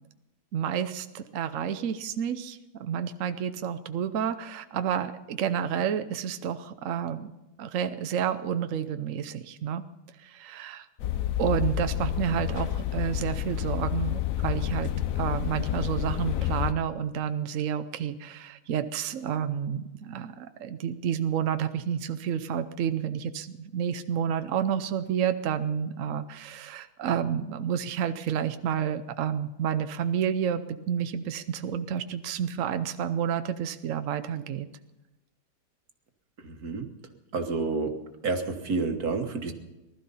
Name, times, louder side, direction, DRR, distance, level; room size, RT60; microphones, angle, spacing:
voice 1, 0.5-7.3 7.6-9.8 10.2-10.9 11.4-14.9 15.2-34.7, right 8 dB, 65° right, 10 dB, 0.8 m, -30 dB
sound 1, 11.0-16.7, left 12 dB, 65° left, 0.8 m, -29 dB
voice 2, 36.4-36.9 37.3-38.0 38.2-39.5, right 4 dB, 50° right, 6 dB, 1.8 m, -29 dB
19.5 x 12.5 x 5.5 m, 1.0 s
omnidirectional pair, 2.1 m